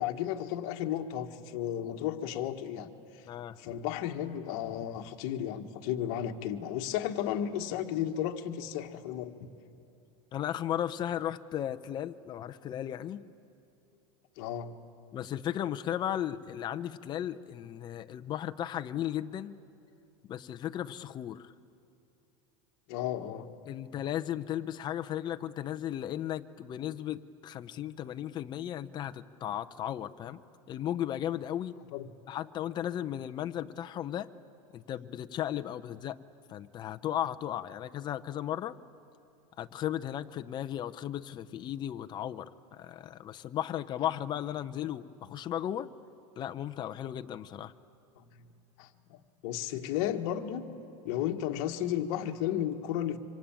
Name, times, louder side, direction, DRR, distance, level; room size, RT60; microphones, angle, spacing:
voice 1, 0.0-2.9 3.6-9.5 14.4-14.8 22.9-23.5 31.9-32.1 48.2-48.3 48.8-50.7 51.0-53.2, left 11 dB, 55° left, 5 dB, 1.5 m, -33 dB
voice 2, 3.3-3.6 10.3-13.3 15.1-19.6 20.3-21.5 23.7-30.4 30.7-31.7 32.3-34.3 34.7-36.2 36.5-38.8 39.6-45.9 46.4-47.7, left 11 dB, 25° left, 8 dB, 0.7 m, -35 dB
26.5 x 25.0 x 8.9 m, 2.7 s
supercardioid pair, 155°, 18 cm